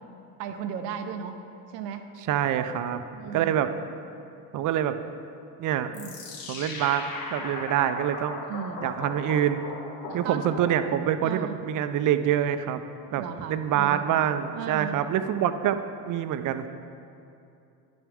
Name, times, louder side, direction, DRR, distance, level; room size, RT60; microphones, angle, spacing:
voice 1, 0.4-1.4 1.7-2.1 2.5-2.7 3.1-3.7 5.9-6.1 8.4-8.8 10.1-10.4 11.2-11.6 13.2-14.1 14.5-15.0, right 8 dB, 85° right, 7 dB, 0.7 m, -35 dB
voice 2, 2.3-3.0 3.3-3.7 4.5-4.9 5.6-5.9 6.5-8.4 8.8-9.7 10.1-12.8 13.1-13.2 13.5-16.7, right 10 dB, 45° right, 10 dB, 0.5 m, -26 dB
sound 1, 5.9-11.2, left 3 dB, 45° left, 1.4 m, -38 dB
9.5 x 6.1 x 3.6 m, 2.6 s
hypercardioid pair, 70°, 47 cm